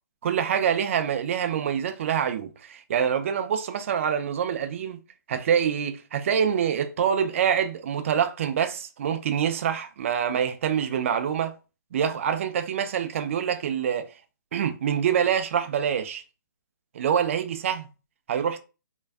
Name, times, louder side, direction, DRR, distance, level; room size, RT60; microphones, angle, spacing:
voice 1, 0.2-5.0 5.3-11.5 11.9-14.1 14.5-16.2 16.9-17.9 18.3-18.6, right 8 dB, 40° right, 0.3 m, -25 dB
2.3 x 2.2 x 2.4 m
figure-of-eight pair, 145°, 10 cm